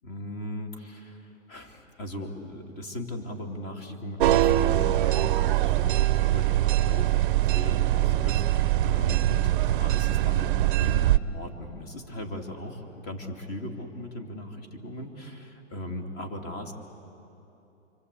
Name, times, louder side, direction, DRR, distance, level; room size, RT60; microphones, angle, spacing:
voice 1, 0.0-7.2 7.5-10.5 10.8-16.7, left 1 dB, 25° left, 4 dB, 2.8 m, -38 dB
sound 1, 4.2-11.2, right 14 dB, 45° right, 0.7 m, -23 dB
26.0 x 25.5 x 8.4 m, 2.9 s
hypercardioid pair, 145°, 36 cm